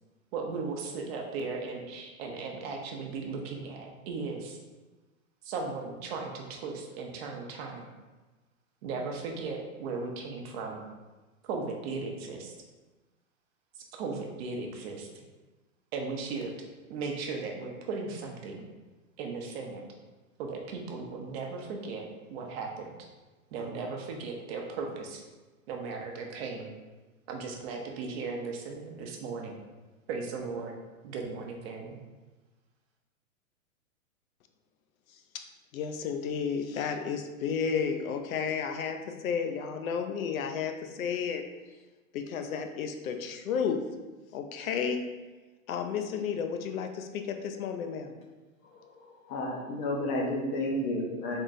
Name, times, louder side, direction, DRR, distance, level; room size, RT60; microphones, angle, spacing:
voice 1, 0.3-4.6 5.4-7.9 8.8-10.9 11.4-12.5 13.8-15.2 15.9-16.5 16.9-18.6 19.2-19.9 20.4-22.9 23.5-25.2 25.7-26.7 27.3-29.6 30.1-30.7 31.0-32.0, right 4 dB, 45° right, 1 dB, 0.7 m, -37 dB
voice 2, 35.7-41.4 42.1-43.8 44.3-45.0 45.7-48.2, left 6 dB, 75° left, 6 dB, 0.6 m, -32 dB
voice 3, 48.6-51.4, left 1 dB, 25° left, 0 dB, 0.5 m, -32 dB
3.6 x 2.5 x 4.0 m, 1.2 s
hypercardioid pair, 135°, 42 cm